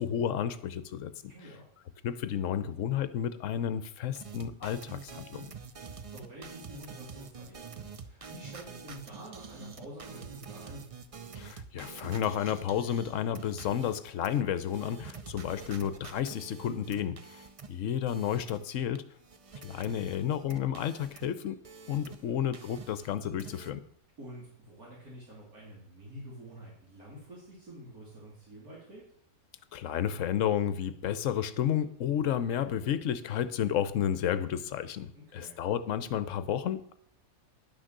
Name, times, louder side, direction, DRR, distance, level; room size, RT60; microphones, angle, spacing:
voice 1, 0.0-1.1 2.0-5.5 11.4-19.0 19.6-21.6 21.9-23.8 29.7-36.9, left 9 dB, 65° left, 13 dB, 1.0 m, -31 dB
voice 2, 1.3-1.6 5.7-10.9 22.1-22.4 24.2-29.0 35.1-35.6, equal, 75° right, -6 dB, 3.4 m, -48 dB
sound 1, 4.1-19.0 19.2-22.3 22.5-23.7, right 5 dB, 45° right, 0.4 m, -47 dB
11.0 x 6.3 x 6.6 m, 0.65 s
omnidirectional pair, 1.5 m